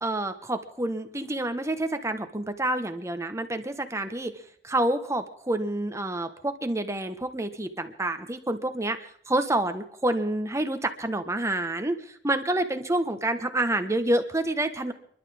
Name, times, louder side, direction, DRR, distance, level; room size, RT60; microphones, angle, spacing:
voice 1, 0.0-4.3 4.6-14.9, right 1 dB, 15° right, 8 dB, 1.3 m, -28 dB
30.0 x 12.0 x 3.6 m, 0.62 s
head